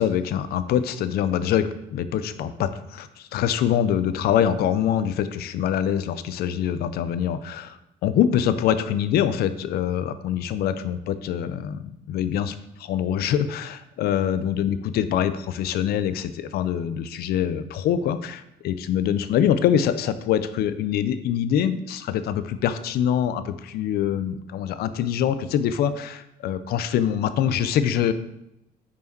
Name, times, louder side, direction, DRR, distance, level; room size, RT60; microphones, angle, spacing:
voice 1, 0.0-28.1, left 9 dB, 70° left, 13 dB, 0.5 m, -24 dB
5.6 x 4.8 x 4.5 m, 0.86 s
cardioid pair, 110°, 17 cm